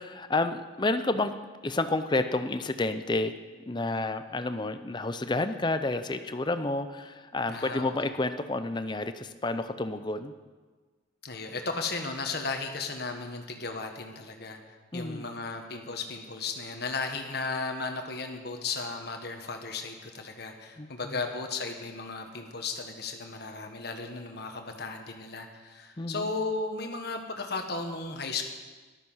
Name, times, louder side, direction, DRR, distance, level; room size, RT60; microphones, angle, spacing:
voice 1, 0.0-1.4 1.6-3.3 3.7-10.3 14.9-15.2 20.8-21.2 26.0-26.3, left 2 dB, 25° left, 10 dB, 0.6 m, -30 dB
voice 2, 7.5-8.1 11.2-14.6 14.9-28.5, left 3 dB, 55° left, 4 dB, 1.5 m, -35 dB
14.0 x 12.5 x 5.7 m, 1.4 s
head